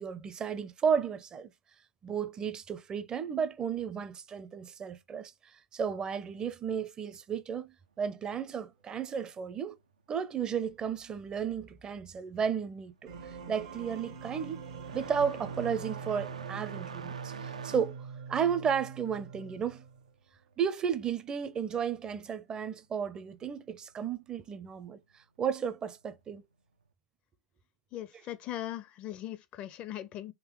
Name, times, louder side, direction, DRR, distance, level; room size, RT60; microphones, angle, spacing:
voice 1, 0.0-1.5 2.0-5.3 5.7-9.8 10.1-13.1 13.5-14.7 14.9-18.0 18.3-19.8 20.6-25.0 25.4-26.4, right 7 dB, 20° right, 0.5 m, -33 dB
sound 1, 12.2-12.6 12.9-21.2 21.5-22.5 23.5-23.6 24.4-24.5 26.3-26.4, right 5 dB, 85° right, 0.4 m, -46 dB
sound 2, 13.1-20.1, right 6 dB, 65° right, 0.9 m, -43 dB
voice 2, 27.9-30.3, left 12 dB, 35° left, 0.4 m, -39 dB
3.7 x 2.8 x 3.0 m
hypercardioid pair, 105°, 4 cm